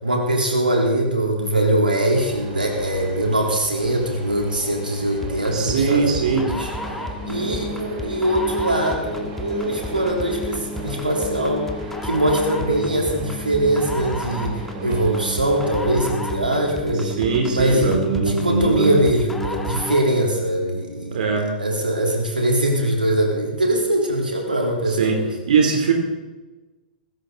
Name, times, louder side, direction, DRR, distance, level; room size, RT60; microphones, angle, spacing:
voice 1, 0.0-6.7 7.2-11.7 12.0-17.1 17.5-21.2 21.6-25.3, right 1 dB, 80° right, 0 dB, 3.6 m, -22 dB
sound 1, 2.1-15.9, right 2 dB, 35° right, 5.7 m, -37 dB
sound 2, 5.2-20.2, left 1 dB, 5° left, 1.8 m, -32 dB
voice 2, 5.5-6.5 16.9-19.0 21.1-21.5 24.9-25.2 25.5-25.9, right 5 dB, 60° right, 2 dB, 3.3 m, -20 dB
20.5 x 16.0 x 4.0 m, 1.1 s
figure-of-eight pair, 105°, 5 cm